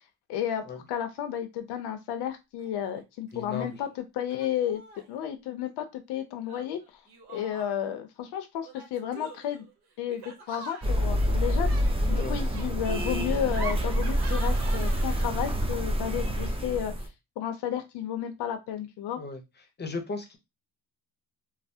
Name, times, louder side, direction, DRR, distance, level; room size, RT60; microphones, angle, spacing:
voice 1, 0.3-0.6 0.9-4.8 5.1-6.8 7.3-9.6 10.0-16.9 17.4-19.2, left 10 dB, 80° left, 7 dB, 0.6 m, -32 dB
Laughter, 2.6-3.0 3.3-3.9 4.3-5.2 6.5-8.0 8.6-15.6, right 3 dB, 75° right, 1.0 m, -45 dB
voice 2, 3.3-3.7 12.1-12.4 19.2-19.4 19.8-20.4, left 4 dB, 25° left, 5 dB, 0.7 m, -35 dB
sound 1, 10.8-17.1, equal, 15° right, 0.5 m, -27 dB
3.1 x 2.0 x 2.7 m, 0.23 s
cardioid pair, 115°, 39 cm